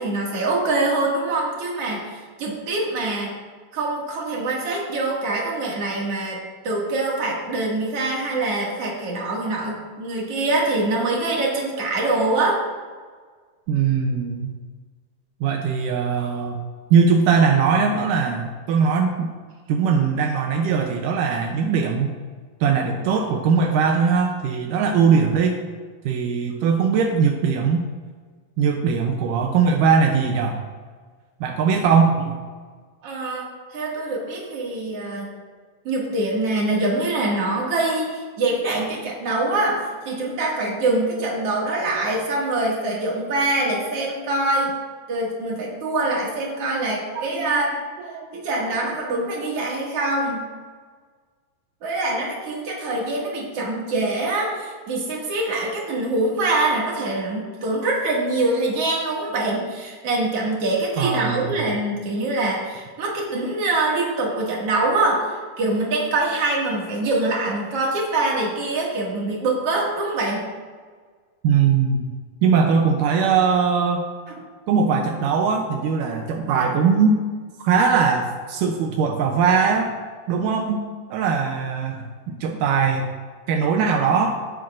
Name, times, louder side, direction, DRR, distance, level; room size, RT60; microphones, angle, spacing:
voice 1, 0.0-3.3 3.7-12.6 33.0-35.3 35.8-44.7 45.1-47.8 48.3-50.4 51.8-70.5 74.3-74.4, right 2 dB, 45° right, -3 dB, 2.6 m, -24 dB
voice 2, 13.7-14.5 15.4-16.6 16.9-19.3 19.7-22.1 22.6-25.6 26.1-27.9 28.6-30.7 31.4-32.4 46.7-46.8 47.2-47.6 48.1-48.3 61.0-61.6 71.4-72.1 72.4-74.1 74.7-77.2 77.6-80.0 80.3-80.8 81.1-83.1 83.5-84.4, right 5 dB, 80° right, 2 dB, 1.9 m, -20 dB
18.0 x 7.7 x 2.6 m, 1.5 s
omnidirectional pair, 4.6 m